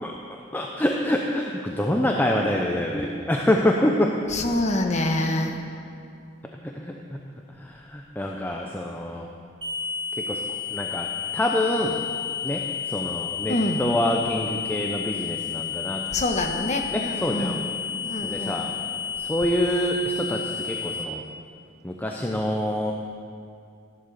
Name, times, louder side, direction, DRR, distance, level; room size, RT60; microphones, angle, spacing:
voice 1, 0.0-4.1 6.6-7.2 7.6-9.3 10.1-12.0 12.4-16.1 16.9-17.6 18.2-18.7 19.2-21.2 21.8-22.9, left 1 dB, 10° left, 0 dB, 0.7 m, -26 dB
voice 2, 4.3-5.6 13.5-13.9 16.1-18.8, left 1 dB, 35° left, 4 dB, 1.3 m, -26 dB
sound 1, 9.6-21.0, left 8 dB, 25° right, 1.5 m, -31 dB
14.5 x 11.5 x 6.8 m, 2.4 s
head